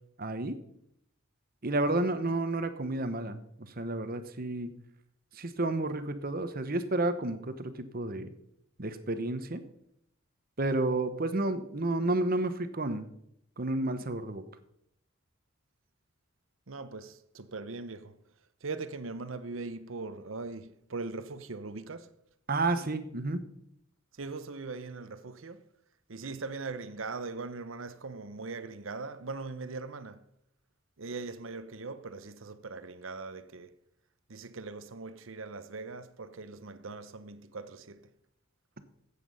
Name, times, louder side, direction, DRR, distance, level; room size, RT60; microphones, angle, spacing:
voice 1, 0.2-0.6 1.6-3.4 3.8-4.7 5.4-8.3 8.8-9.6 10.6-13.0 13.6-14.4 22.5-23.4, right 2 dB, 45° right, 1.1 m, -31 dB
voice 2, 16.7-18.1 18.6-22.1 24.2-25.6 26.1-30.2 31.0-33.7 34.3-38.0, right 3 dB, 75° right, 0.9 m, -40 dB
13.5 x 8.4 x 5.5 m
head